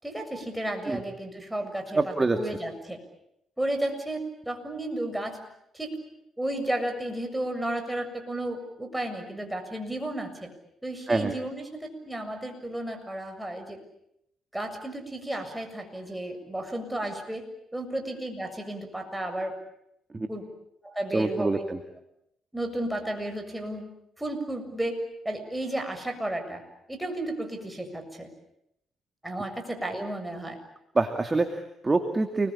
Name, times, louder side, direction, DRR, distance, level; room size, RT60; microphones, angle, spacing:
voice 1, 0.0-3.0 3.6-5.4 5.7-5.9 6.4-10.5 10.8-13.8 14.5-17.4 17.7-19.5 20.3-20.5 20.8-21.7 22.5-23.9 24.2-25.0 25.2-26.6 26.9-28.3 29.2-30.6, right 1 dB, 5° right, 4 dB, 7.1 m, -33 dB
voice 2, 1.9-2.4 11.1-11.3 20.1-20.3 21.1-21.8 31.0-32.5, right 3 dB, 25° right, 6 dB, 2.4 m, -25 dB
29.0 x 22.0 x 8.8 m, 0.78 s
cardioid pair, 90°, 0 cm